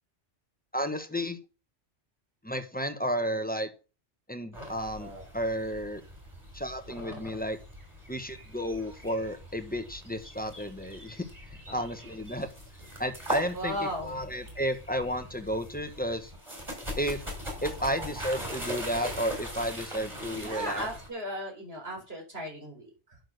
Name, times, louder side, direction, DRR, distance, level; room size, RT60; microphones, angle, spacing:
voice 1, 0.7-1.4 2.4-3.7 4.3-6.0 6.5-7.6 8.1-11.3 11.7-12.5 13.0-16.3 17.0-17.2 17.6-20.9, equal, 10° left, 8 dB, 1.0 m, -32 dB
sound 1, 4.5-21.1, equal, 25° right, 4.2 m, -41 dB
voice 2, 13.5-14.2 20.4-23.2, equal, 60° right, 1 dB, 4.2 m, -36 dB
9.9 x 6.3 x 6.5 m, 0.34 s
omnidirectional pair, 1.2 m